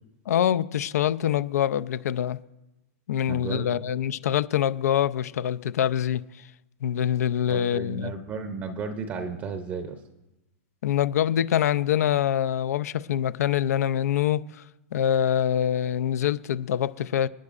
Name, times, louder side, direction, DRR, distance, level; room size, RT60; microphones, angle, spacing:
voice 1, 0.3-2.4 3.1-6.2 6.8-8.1 10.8-14.4 14.9-17.3, left 10 dB, 85° left, 0.5 m, -25 dB
voice 2, 3.3-3.7 7.5-10.0, right 5 dB, 20° right, 0.6 m, -34 dB
28.5 x 9.6 x 2.5 m
supercardioid pair, 165°, 8 cm